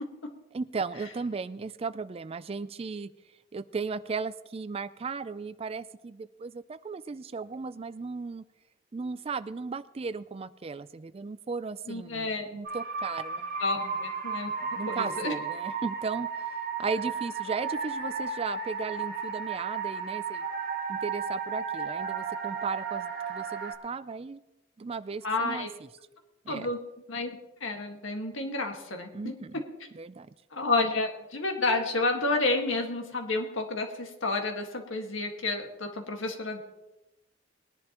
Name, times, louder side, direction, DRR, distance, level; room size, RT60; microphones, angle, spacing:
voice 1, 0.5-3.1 3.5-8.4 8.9-13.9 14.6-20.4 20.9-24.4 24.8-25.7 26.5-26.7 29.1-29.6 29.9-30.3, right 4 dB, 30° right, 15 dB, 0.4 m, -36 dB
voice 2, 11.9-12.5 13.6-14.5 14.9-15.3 25.2-25.7 26.5-26.8 27.1-27.3 27.6-29.4 30.5-36.6, left 3 dB, 80° left, 3 dB, 1.7 m, -30 dB
sound 1, 12.7-23.7, right 5 dB, 50° right, 1.5 m, -34 dB
20.5 x 10.5 x 3.0 m, 1.0 s
head